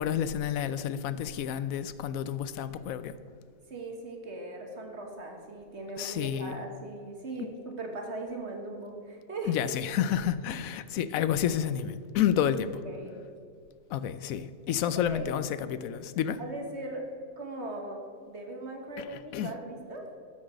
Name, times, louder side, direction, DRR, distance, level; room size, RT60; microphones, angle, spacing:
voice 1, 0.0-3.1 6.0-6.6 9.5-12.8 13.9-16.4 19.0-19.5, left 9 dB, 85° left, 1.0 m, -30 dB
voice 2, 3.7-9.5 12.8-13.2 14.7-15.3 16.4-20.1, right 2 dB, 55° right, 1.7 m, -39 dB
12.5 x 5.9 x 6.3 m
omnidirectional pair, 1.4 m